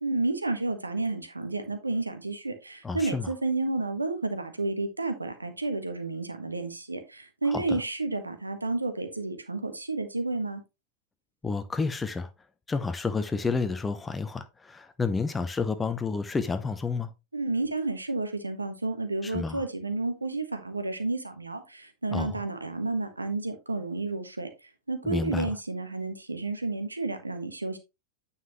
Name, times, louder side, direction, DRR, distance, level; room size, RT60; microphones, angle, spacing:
voice 1, 0.0-10.6 17.3-27.8, right 3 dB, 80° right, 1.4 m, -31 dB
voice 2, 2.8-3.3 7.5-7.8 11.4-12.3 12.7-17.1 19.2-19.6 22.1-22.4 25.0-25.5, left 4 dB, 15° left, 0.7 m, -30 dB
9.3 x 5.5 x 3.1 m
figure-of-eight pair, 90°, 0 cm